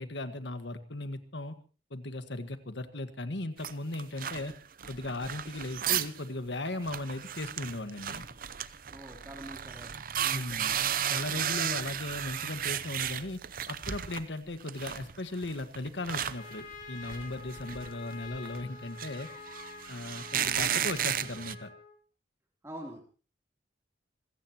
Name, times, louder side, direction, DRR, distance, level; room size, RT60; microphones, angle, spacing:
voice 1, 0.0-1.6 1.9-4.5 4.9-8.3 10.3-10.8 11.1-13.4 13.7-19.3 19.9-21.7, left 2 dB, 75° left, 9 dB, 1.6 m, -37 dB
sound 1, 3.6-6.2 6.5-6.6 6.8-14.2 14.6-21.5, right 9 dB, 50° right, 0.7 m, -34 dB
voice 2, 8.9-9.9 10.2-10.8 22.6-23.0, right 1 dB, 15° right, 0 dB, 3.3 m, -45 dB
Trumpet, 16.0-22.0, left 4 dB, 45° left, 3.5 m, -47 dB
26.5 x 16.5 x 3.0 m, 0.35 s
head